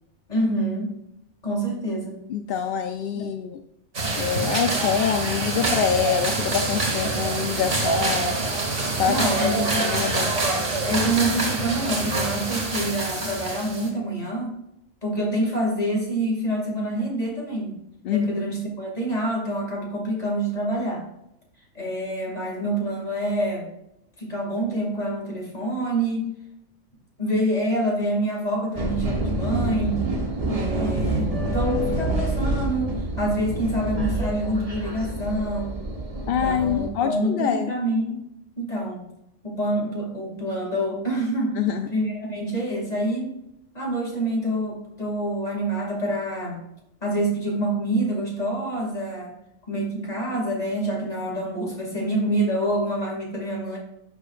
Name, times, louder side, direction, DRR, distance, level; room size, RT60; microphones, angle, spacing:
voice 1, 0.3-1.0 1.4-2.2 3.1-3.3 9.1-9.9 10.8-14.6 15.0-17.8 18.1-21.0 21.7-23.7 24.2-26.3 27.2-30.1 30.5-35.8 36.3-38.2 38.6-39.1 39.4-41.6 41.9-43.4 43.7-46.6 47.0-49.3 49.7-53.8, right 1 dB, 30° left, -2 dB, 2.4 m, -26 dB
voice 2, 2.3-3.6 4.2-8.4 9.0-9.2 9.4-10.4 18.1-18.4 36.3-37.7 41.6-41.9, left 8 dB, 65° left, 6 dB, 0.6 m, -25 dB
sound 1, 3.9-13.9, right 3 dB, 60° right, 1.9 m, -26 dB
sound 2, 28.8-36.9, right 1 dB, 30° right, 1.1 m, -27 dB
11.0 x 6.4 x 2.5 m, 0.81 s
omnidirectional pair, 1.4 m